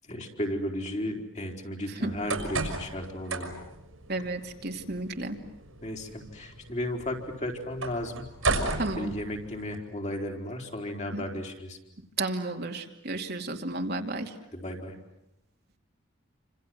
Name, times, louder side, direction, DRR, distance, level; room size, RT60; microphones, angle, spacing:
voice 1, 0.1-3.5 5.8-8.2 8.9-11.8 14.5-15.0, left 1 dB, 35° left, 2 dB, 4.2 m, -34 dB
sound 1, 2.0-9.8, right 3 dB, 85° right, 6.0 m, -35 dB
voice 2, 4.1-5.4 8.8-9.1 11.1-11.2 12.2-14.3, right 2 dB, 50° right, 4 dB, 2.6 m, -32 dB
28.5 x 26.5 x 7.8 m, 0.84 s
head